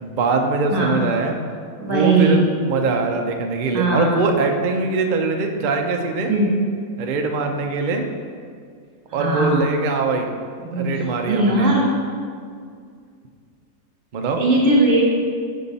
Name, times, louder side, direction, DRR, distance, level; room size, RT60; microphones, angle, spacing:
voice 1, 0.0-1.4 1.8-6.3 7.0-8.1 9.1-10.3 10.8-11.7 14.1-14.4, right 4 dB, 70° right, 4 dB, 0.4 m, -22 dB
voice 2, 0.7-1.1 1.8-2.5 3.7-4.2 6.3-6.5 9.1-9.6 10.7-11.8 14.4-15.0, right 2 dB, 55° right, -3 dB, 2.0 m, -19 dB
11.0 x 3.7 x 4.1 m, 2.1 s
omnidirectional pair, 1.6 m